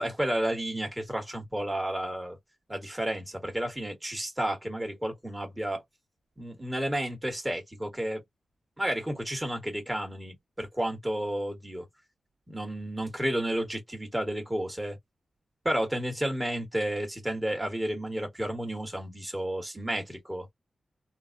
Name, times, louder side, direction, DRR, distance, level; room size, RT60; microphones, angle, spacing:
voice 1, 0.0-2.4 2.7-5.8 6.4-8.2 8.8-11.9 12.5-15.0 15.6-20.5, right 1 dB, 10° right, 1.4 m, -31 dB
3.8 x 2.1 x 2.6 m
wide cardioid pair, 135°, 0 cm